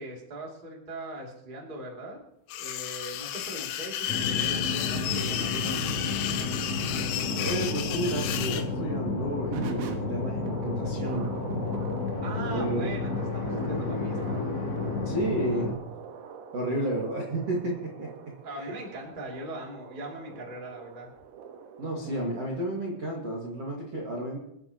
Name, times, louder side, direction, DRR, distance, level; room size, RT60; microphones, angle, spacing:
voice 1, 0.0-2.2 2.5-5.8 12.2-14.5 18.4-21.1, right 1 dB, 25° right, -2 dB, 1.0 m, -40 dB
sound 1, 2.5-8.7, left 10 dB, 85° left, 3.7 m, -32 dB
sound 2, 4.1-15.7, left 3 dB, 40° left, 3.2 m, -31 dB
voice 2, 7.4-11.3 12.5-12.9 15.0-15.7 16.5-18.1 18.5-18.6 21.8-24.4, right 1 dB, 60° right, -2 dB, 1.6 m, -31 dB
sound 3, 7.4-22.3, right 7 dB, 90° right, 4.1 m, -44 dB
27.0 x 10.0 x 3.0 m, 0.79 s
omnidirectional pair, 6.0 m